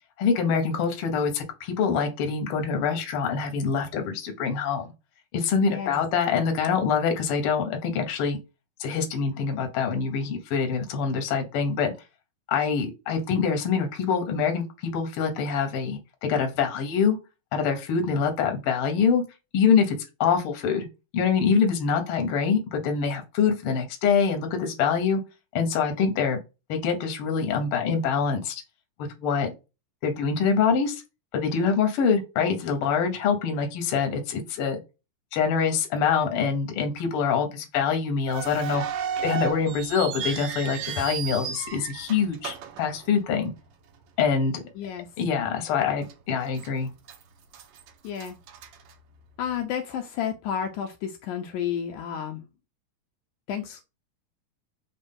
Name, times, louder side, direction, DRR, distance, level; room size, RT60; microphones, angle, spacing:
voice 1, 0.2-4.9 5.3-8.4 8.8-11.9 12.5-17.2 17.5-19.2 19.5-19.9 20.2-20.8 21.1-25.2 25.5-26.4 26.7-28.6 29.0-29.5 30.0-31.0 31.3-34.8 35.3-38.9 39.2-43.5 44.2-44.6 45.2-46.9, left 6 dB, 60° left, 1.5 m, -25 dB
voice 2, 5.6-5.9 44.8-45.1 48.0-48.4 49.4-52.4 53.5-53.8, left 8 dB, 80° left, 1.9 m, -31 dB
sound 1, 38.3-43.6 43.9-44.0 44.7-44.9 45.4-45.5 46.1-46.7 47.0-49.5, right 7 dB, 70° right, 1.8 m, -34 dB
5.2 x 2.4 x 3.5 m
omnidirectional pair, 3.8 m